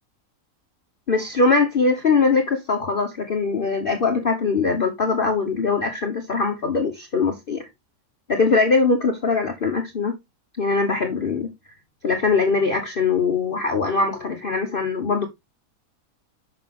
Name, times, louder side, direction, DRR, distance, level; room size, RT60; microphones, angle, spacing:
voice 1, 1.1-7.6 8.3-10.1 10.6-11.5 12.0-15.3, left 4 dB, 40° left, 1.0 m, -21 dB
6.3 x 5.9 x 3.6 m
omnidirectional pair, 1.6 m